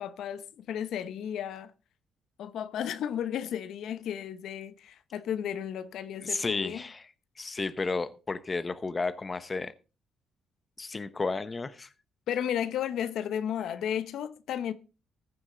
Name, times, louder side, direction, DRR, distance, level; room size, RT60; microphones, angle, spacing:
voice 1, 0.0-1.7 2.4-6.8 12.3-14.7, left 9 dB, 75° left, 0.9 m, -33 dB
voice 2, 6.2-9.7 10.8-11.9, left 3 dB, 30° left, 0.9 m, -33 dB
15.0 x 9.5 x 3.9 m
cardioid pair, 90°, 0 cm